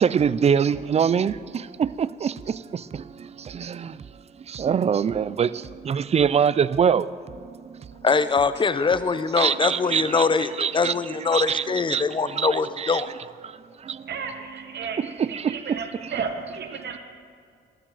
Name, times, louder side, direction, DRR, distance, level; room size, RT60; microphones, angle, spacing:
voice 1, 0.0-4.0 4.5-7.1 7.4-7.9 9.4-11.6 11.9-13.0 13.4-14.1 14.8-16.1, right 7 dB, 35° right, 0.4 m, -25 dB
voice 2, 8.0-13.1, left 4 dB, 25° left, 0.6 m, -23 dB
voice 3, 14.1-17.0, right 5 dB, 60° right, 1.5 m, -33 dB
13.0 x 13.0 x 4.0 m
cardioid pair, 90°, 20 cm